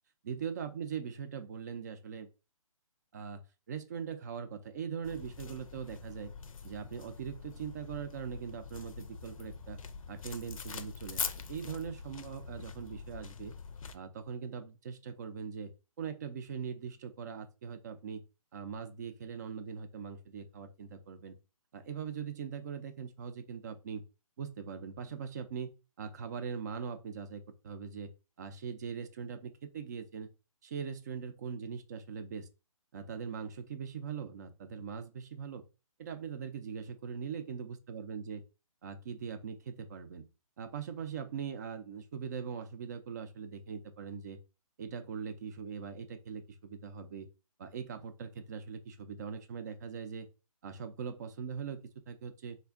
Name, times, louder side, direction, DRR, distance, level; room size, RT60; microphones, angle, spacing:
voice 1, 0.2-2.3 3.1-6.3 6.6-9.8 10.1-13.5 13.9-15.7 16.0-18.2 18.5-21.3 21.7-24.0 24.4-25.7 26.0-28.1 28.4-30.3 30.6-32.5 32.9-35.6 36.0-38.4 38.8-40.2 40.6-44.4 44.8-47.3 47.6-50.3 50.6-52.6, right 6 dB, 30° right, 0.4 m, -41 dB
sound 1, 5.0-14.0, left 6 dB, 65° left, 0.5 m, -44 dB
3.4 x 2.2 x 3.5 m
hypercardioid pair, 155°, 19 cm